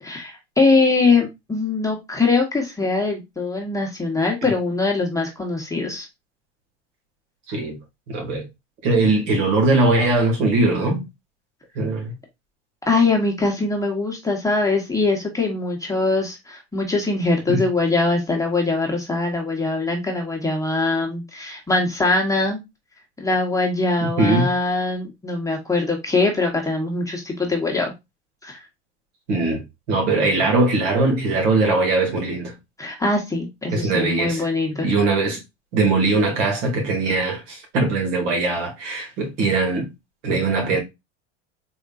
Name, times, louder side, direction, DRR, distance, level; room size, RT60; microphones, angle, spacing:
voice 1, 0.0-6.1 12.9-22.6 23.2-27.9 28.4-28.6 32.8-34.9, left 3 dB, 10° left, 1.1 m, -22 dB
voice 2, 7.5-7.8 8.1-8.4 8.8-11.0 11.8-12.1 17.5-17.7 24.0-24.5 29.3-32.5 33.7-34.4 34.8-35.4 35.7-39.9 40.2-40.8, right 3 dB, 70° right, 2.1 m, -20 dB
3.8 x 3.5 x 2.4 m
hypercardioid pair, 100°, 37 cm